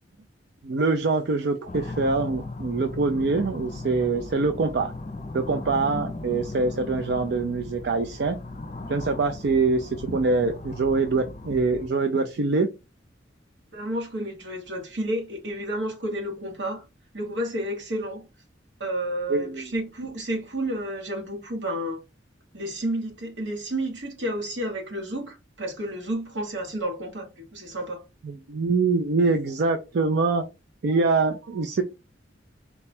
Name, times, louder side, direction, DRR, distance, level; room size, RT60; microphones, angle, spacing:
voice 1, 0.6-4.9 5.3-8.4 8.9-12.7 19.3-19.7 28.2-30.4 30.8-31.8, right 3 dB, 65° right, 0.4 m, -24 dB
sound 1, 1.7-11.9, left 2 dB, 35° left, 0.6 m, -37 dB
voice 2, 13.7-16.8 17.1-18.3 18.8-22.0 22.5-28.0, right 1 dB, 85° right, 1.4 m, -31 dB
4.1 x 2.3 x 4.2 m
head